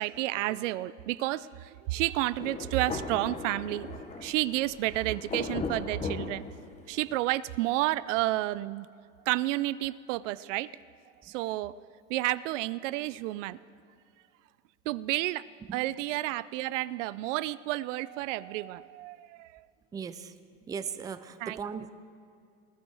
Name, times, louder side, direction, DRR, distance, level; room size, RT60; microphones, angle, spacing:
voice 1, 0.0-6.4 6.9-8.9 9.3-10.7 11.2-11.7 12.1-13.6 14.9-15.5 15.7-19.6 21.4-21.6, right 17 dB, 75° right, 18 dB, 0.5 m, -31 dB
Thunder, 2.4-7.2, left 4 dB, 20° left, 0.9 m, -38 dB
voice 2, 19.9-20.3 20.7-21.9, right 6 dB, 10° right, 11 dB, 0.4 m, -37 dB
19.0 x 11.5 x 4.7 m, 2.4 s
supercardioid pair, 125°, 37 cm